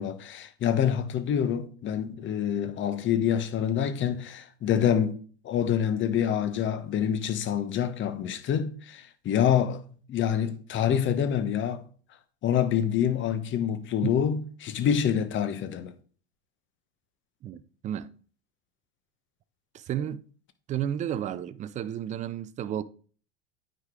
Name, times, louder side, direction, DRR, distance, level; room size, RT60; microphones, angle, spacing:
voice 1, 0.0-5.2 5.4-9.8 10.1-11.8 12.4-15.9, left 9 dB, 30° left, 1.0 m, -26 dB
voice 2, 17.4-18.1 19.7-20.2 20.7-22.8, right 10 dB, 20° right, 0.4 m, -32 dB
9.2 x 5.1 x 3.7 m
hypercardioid pair, 90°, 37 cm